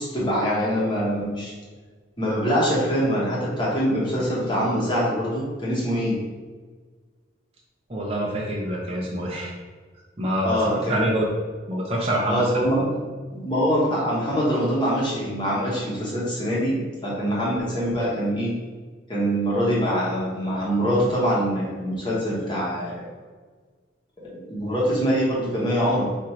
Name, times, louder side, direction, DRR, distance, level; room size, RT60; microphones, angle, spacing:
voice 1, 0.0-1.5 2.2-6.2 10.4-11.1 12.3-12.9 13.3-18.5 19.1-23.1 24.2-26.1, equal, 25° left, -6 dB, 1.0 m, -24 dB
voice 2, 7.9-9.5 10.2-11.3 11.7-12.5, right 1 dB, 30° right, -4 dB, 0.6 m, -26 dB
4.3 x 2.5 x 4.3 m, 1.5 s
head